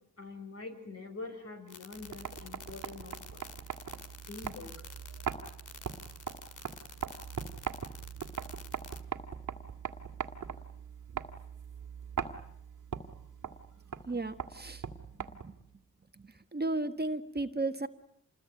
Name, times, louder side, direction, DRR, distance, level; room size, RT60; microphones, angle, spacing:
voice 1, 0.2-3.5 4.3-5.3, left 3 dB, 55° left, 5 dB, 6.1 m, -45 dB
sound 1, 1.7-9.0, left 6 dB, 90° left, 2.1 m, -49 dB
sound 2, 2.0-15.7, right 7 dB, 80° right, 1.9 m, -41 dB
voice 2, 14.1-14.8 15.2-15.5 16.2-17.9, right 2 dB, 35° right, 7 dB, 1.4 m, -35 dB
27.5 x 21.5 x 9.4 m, 0.71 s
wide cardioid pair, 80°, 30 cm